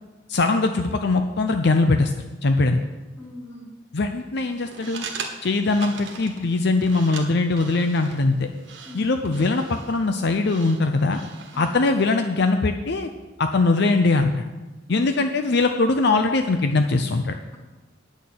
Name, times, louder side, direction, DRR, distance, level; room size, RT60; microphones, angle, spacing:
voice 1, 0.3-2.1 2.4-2.8 3.9-5.1 5.4-8.5 8.9-11.2 11.6-13.1 13.4-14.4 14.9-17.4, left 3 dB, 60° left, 6 dB, 0.6 m, -21 dB
voice 2, 3.2-3.7 8.8-9.1 11.5-12.0 14.9-15.2, left 1 dB, 15° left, -3 dB, 2.6 m, -41 dB
sound 1, 4.5-11.9, right 5 dB, 65° right, 1.4 m, -40 dB
9.3 x 6.4 x 8.5 m, 1.2 s
head